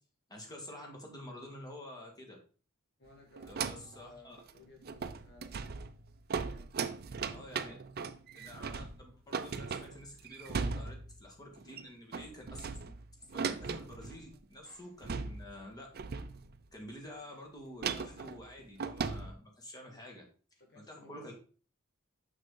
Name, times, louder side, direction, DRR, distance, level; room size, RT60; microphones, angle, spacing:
voice 1, 0.3-2.4 3.4-4.4 7.3-7.8 8.3-12.8 13.3-15.9 16.7-20.2 20.8-21.3, left 1 dB, 20° left, 0 dB, 1.9 m, -49 dB
voice 2, 3.0-5.7 6.5-7.2 19.8-20.2 20.6-21.3, left 2 dB, 55° left, -1 dB, 2.0 m, -59 dB
sound 1, 3.4-4.0 4.4-4.5 4.8-11.2 11.6-11.9 12.1-14.3 14.7-14.8 15.0-15.7 15.9-16.7 17.8-19.3, right 5 dB, 50° right, 0.5 m, -38 dB
6.4 x 6.1 x 3.9 m, 0.40 s
head